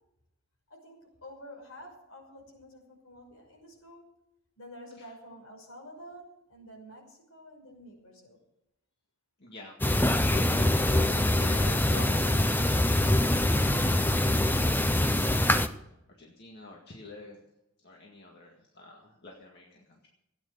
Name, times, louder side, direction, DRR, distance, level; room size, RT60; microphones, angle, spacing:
voice 1, 0.7-4.0 4.6-8.4, equal, 70° left, 1 dB, 5.8 m, -49 dB
voice 2, 9.4-15.9 16.2-17.4 17.8-20.1, left 2 dB, 50° left, -1 dB, 2.0 m, -47 dB
sound 1, 9.8-15.7, left 1 dB, 10° left, 0.6 m, -24 dB
17.0 x 9.5 x 6.7 m, 0.86 s
head